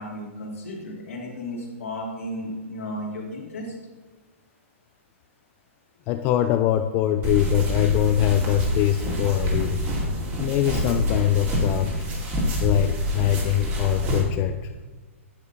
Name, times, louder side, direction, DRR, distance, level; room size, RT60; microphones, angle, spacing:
voice 1, 0.0-3.8, left 1 dB, 85° left, -3 dB, 2.8 m, -34 dB
voice 2, 6.1-9.8 10.4-11.9 12.6-14.7, left 13 dB, 30° left, 8 dB, 0.4 m, -23 dB
sound 1, 7.2-14.2, equal, 25° right, 2.5 m, -26 dB
10.0 x 6.4 x 4.0 m, 1.3 s
hypercardioid pair, 130°, 7 cm